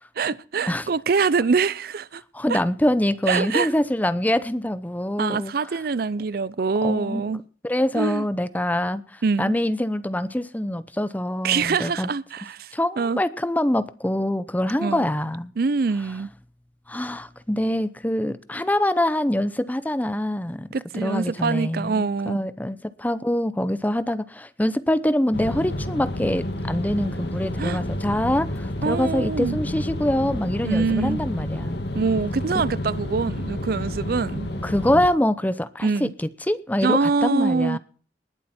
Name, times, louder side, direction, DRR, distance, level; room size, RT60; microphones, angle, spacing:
voice 1, 0.2-2.2 2.5-2.6 3.3-3.7 5.2-7.4 7.9-8.2 9.2-9.6 11.4-13.2 14.8-15.0 15.6-16.3 20.7-22.4 27.6-27.8 28.8-29.6 30.6-31.2 31.9-34.5 35.8-36.1 36.8-37.8, right 4 dB, 55° right, 0.5 m, -24 dB
voice 2, 2.3-5.5 6.8-7.4 7.6-12.1 12.7-15.5 16.9-20.7 21.0-31.8 34.6-37.8, left 1 dB, 10° left, 0.7 m, -24 dB
sound 1, 25.3-35.1, left 1 dB, 70° left, 2.0 m, -30 dB
20.0 x 7.9 x 4.3 m
head